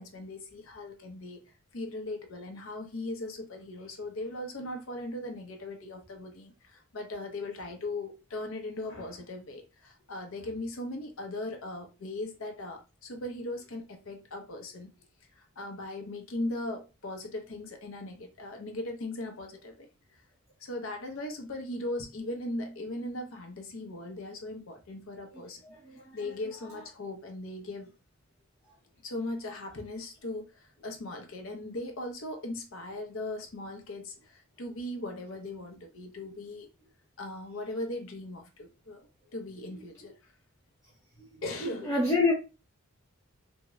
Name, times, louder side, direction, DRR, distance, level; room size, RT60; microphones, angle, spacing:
voice 1, 0.0-1.4 1.7-14.9 15.3-19.9 20.6-25.6 26.1-27.9 29.0-36.7 37.2-39.0 39.3-40.3 41.4-41.9, left 2 dB, 60° left, 0.6 m, -38 dB
voice 2, 25.6-26.2 41.2-41.4 41.8-42.3, left 3 dB, 15° left, 0.7 m, -28 dB
3.5 x 2.1 x 3.0 m
head